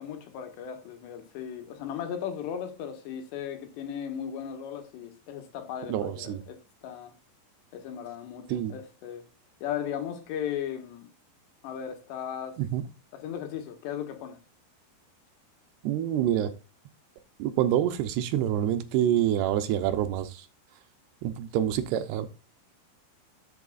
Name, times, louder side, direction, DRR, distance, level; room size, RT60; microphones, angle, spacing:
voice 1, 0.0-7.1 7.7-9.3 9.6-11.1 11.6-12.6 13.1-14.4, left 9 dB, 80° left, 3.7 m, -36 dB
voice 2, 5.9-6.4 8.5-8.7 12.6-12.8 15.8-16.5 17.4-20.5 21.2-22.3, right 11 dB, 80° right, 2.7 m, -27 dB
12.0 x 6.9 x 2.5 m
omnidirectional pair, 5.0 m